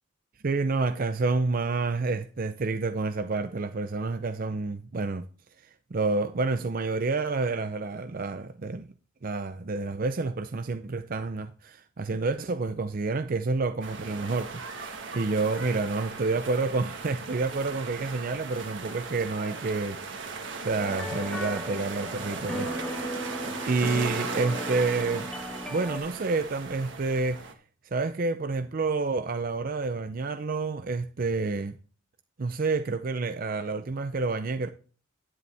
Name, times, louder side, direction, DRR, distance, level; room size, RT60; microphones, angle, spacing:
voice 1, 0.4-5.3 5.9-8.9 9.2-23.1 23.6-25.3 25.7-27.5 27.9-31.8 32.4-34.7, right 3 dB, 45° right, 0.5 m, -29 dB
sound 1, 13.8-27.5, right 4 dB, 70° right, 1.5 m, -38 dB
sound 2, 20.8-26.0, equal, 5° left, 1.2 m, -36 dB
10.5 x 9.7 x 3.4 m
head